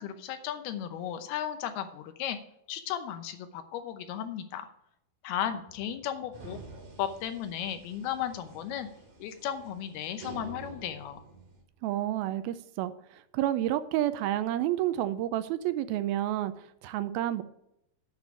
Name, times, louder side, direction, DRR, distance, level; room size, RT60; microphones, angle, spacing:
voice 1, 0.0-2.4 2.7-4.7 5.2-6.6 7.0-8.9 9.2-11.2, left 10 dB, 85° left, 8 dB, 2.9 m, -35 dB
sound 1, 6.3-11.6, right 3 dB, 55° right, 4.1 m, -48 dB
voice 2, 11.8-17.4, right 13 dB, 80° right, 12 dB, 2.4 m, -30 dB
7.9 x 6.9 x 7.1 m, 0.79 s
omnidirectional pair, 4.4 m